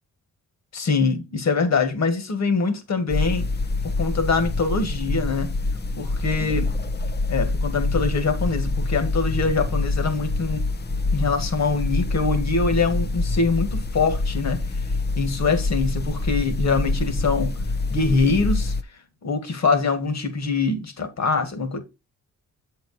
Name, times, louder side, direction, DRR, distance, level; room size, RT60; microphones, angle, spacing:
voice 1, 0.7-3.5 3.8-5.5 6.0-6.7 7.3-10.6 11.1-14.6 15.2-17.5 17.9-18.7 19.2-21.8, left 4 dB, 60° left, 2.0 m, -23 dB
sound 1, 3.1-18.8, left 3 dB, 30° left, 0.8 m, -26 dB
7.6 x 4.8 x 4.3 m
cardioid pair, 75°, 31 cm